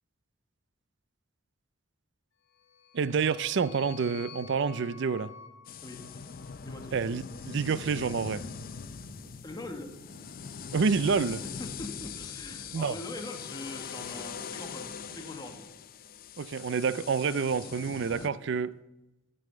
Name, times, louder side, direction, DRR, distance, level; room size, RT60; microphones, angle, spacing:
sound 1, 2.5-6.9, left 8 dB, 75° left, 1.4 m, -50 dB
voice 1, 2.9-5.3 6.9-8.4 10.7-11.4 12.7-13.0 16.4-18.8, right 5 dB, 60° right, 0.4 m, -28 dB
sound 2, 5.6-18.3, left 6 dB, 45° left, 0.5 m, -42 dB
voice 2, 6.6-7.0 9.4-9.9 11.2-15.7, left 2 dB, 20° left, 1.3 m, -42 dB
sound 3, 8.6-15.6, left 1 dB, 85° right, 2.4 m, -52 dB
12.5 x 5.5 x 7.7 m
head